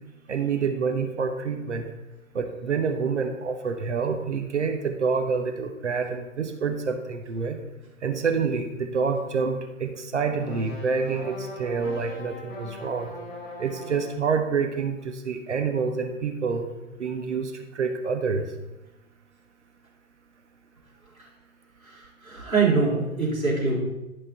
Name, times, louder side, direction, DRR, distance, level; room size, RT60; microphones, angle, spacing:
voice 1, 0.3-1.9 2.3-7.6 8.0-13.1 13.6-16.7 17.0-18.5, right 5 dB, 60° right, 5 dB, 1.0 m, -27 dB
sound 1, 10.3-14.3, left 2 dB, 45° left, 2.6 m, -40 dB
voice 2, 21.8-23.8, right 4 dB, 80° right, -5 dB, 3.4 m, -24 dB
11.0 x 5.4 x 4.0 m, 0.96 s
figure-of-eight pair, 125°, 41 cm